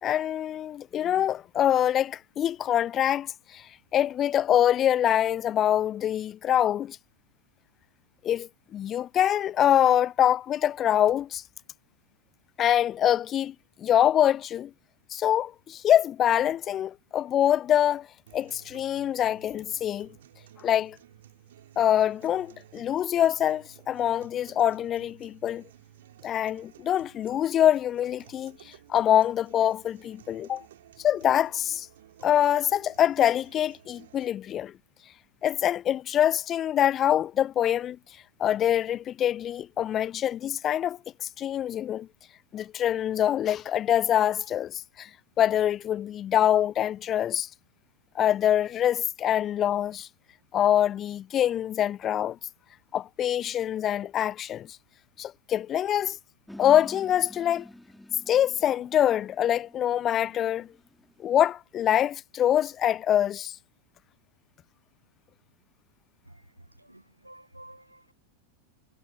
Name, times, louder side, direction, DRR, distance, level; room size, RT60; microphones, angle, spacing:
voice 1, 0.0-7.0 8.2-11.4 12.6-14.7 15.1-18.1 18.3-20.1 20.6-21.0 21.8-25.6 26.2-30.6 31.0-31.9 32.2-34.7 35.4-38.0 38.4-42.1 42.5-45.1 45.4-47.5 48.1-50.1 50.5-52.4 52.9-54.8 55.2-56.2 56.6-57.7 58.3-60.7 61.2-63.6, left 11 dB, 30° left, 0.7 m, -25 dB
sound 1, 18.3-34.3, right 12 dB, 60° right, 3.5 m, -54 dB
sound 2, 56.5-61.5, left 1 dB, 5° left, 5.0 m, -48 dB
voice 2, 66.2-68.1, right 1 dB, 85° right, 1.2 m, -51 dB
figure-of-eight pair, 90°, 0 cm